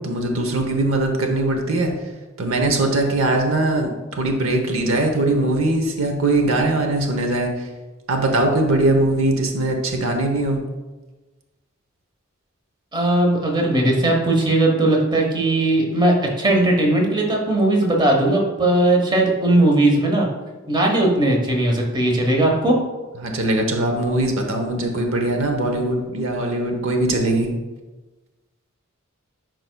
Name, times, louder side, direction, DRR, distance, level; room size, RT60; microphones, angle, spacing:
voice 1, 0.0-1.9 2.4-7.7 8.1-10.6 23.1-27.5, right 2 dB, 75° right, 3 dB, 0.8 m, -21 dB
voice 2, 12.9-20.3 20.7-22.8, right 1 dB, 20° right, 0 dB, 1.0 m, -18 dB
11.0 x 4.6 x 2.2 m, 1.2 s
head